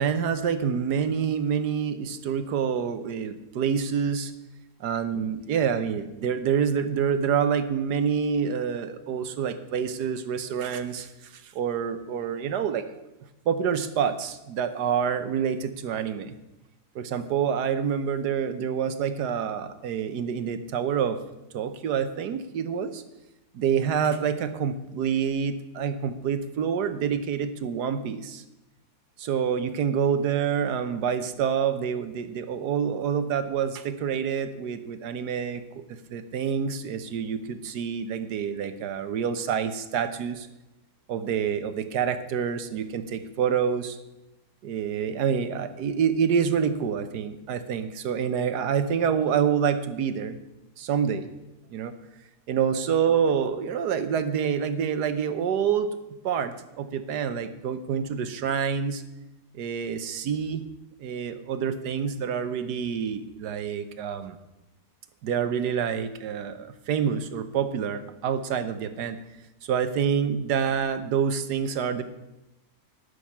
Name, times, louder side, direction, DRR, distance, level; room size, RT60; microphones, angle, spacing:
voice 1, 0.0-4.3 4.8-12.9 13.5-16.3 16.9-21.2 21.5-23.0 23.5-28.4 29.2-35.8 36.1-40.5 41.1-44.0 44.6-50.4 50.8-51.3 51.7-51.9 52.5-55.9 56.2-59.0 59.5-60.6 61.0-64.4 65.2-69.2 69.6-72.0, right 7 dB, 85° right, 11 dB, 1.5 m, -27 dB
12.0 x 6.5 x 8.7 m, 0.95 s
omnidirectional pair, 1.7 m